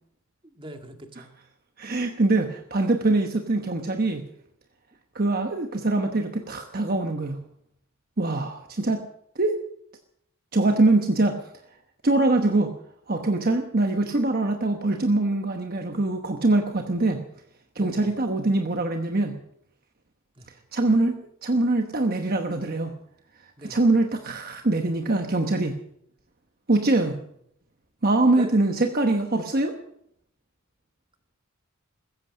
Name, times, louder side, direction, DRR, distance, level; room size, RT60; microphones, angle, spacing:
voice 1, 0.4-1.3 17.8-18.1 20.4-20.5 23.6-23.8 28.4-28.5, right 1 dB, 25° right, 5 dB, 1.9 m, -41 dB
voice 2, 1.8-4.2 5.1-7.4 8.2-9.0 9.4-9.6 10.5-11.4 12.0-12.7 13.1-17.2 17.7-19.4 20.7-22.9 23.6-25.8 26.7-27.2 28.0-29.8, right 2 dB, 45° right, 5 dB, 1.1 m, -23 dB
16.0 x 14.0 x 6.4 m, 0.72 s
head